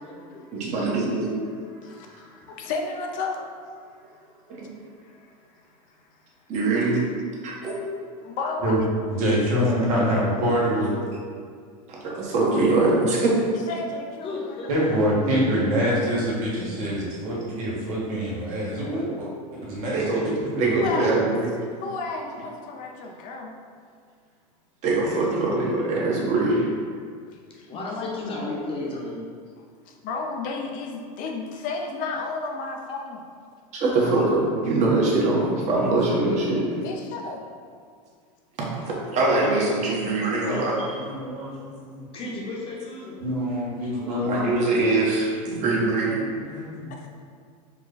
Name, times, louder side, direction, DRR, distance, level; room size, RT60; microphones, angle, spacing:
voice 1, 0.0-0.5 14.2-15.1 27.7-29.2 42.1-43.2 43.9-44.2, left 2 dB, 30° left, -3 dB, 0.9 m, -34 dB
voice 2, 0.5-1.3 4.5-4.7 6.5-7.0 7.4-7.9 11.9-13.4 19.9-20.3 20.6-21.5 24.8-26.7 33.7-36.8 38.6-40.9 44.2-46.1, right 2 dB, 40° right, -4 dB, 1.1 m, -23 dB
voice 3, 1.8-3.5 5.0-5.2 8.2-8.8 13.7-14.9 20.7-21.3 21.8-23.6 27.5-28.1 29.9-33.2 34.1-34.3 36.8-37.4 46.9-47.1, left 3 dB, 45° left, 2 dB, 0.5 m, -33 dB
voice 4, 9.1-10.9 14.7-21.1 39.2-39.3 40.4-40.6 40.9-42.1 43.2-44.9 45.6-46.2 46.4-46.9, equal, 80° right, -6 dB, 1.5 m, -26 dB
4.7 x 2.3 x 3.8 m, 2.1 s
supercardioid pair, 115°, 18 cm